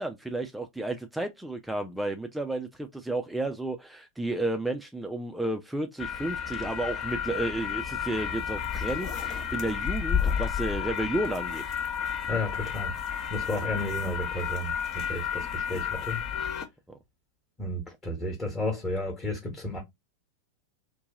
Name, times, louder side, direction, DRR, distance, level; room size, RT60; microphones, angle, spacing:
voice 1, 0.0-11.6, right 2 dB, 5° right, 0.4 m, -32 dB
sound 1, 6.0-16.6, left 8 dB, 30° left, 0.7 m, -31 dB
voice 2, 12.3-12.9 13.3-16.2 17.6-19.8, left 1 dB, 15° left, 1.1 m, -32 dB
2.8 x 2.2 x 3.7 m
figure-of-eight pair, 90°, 0 cm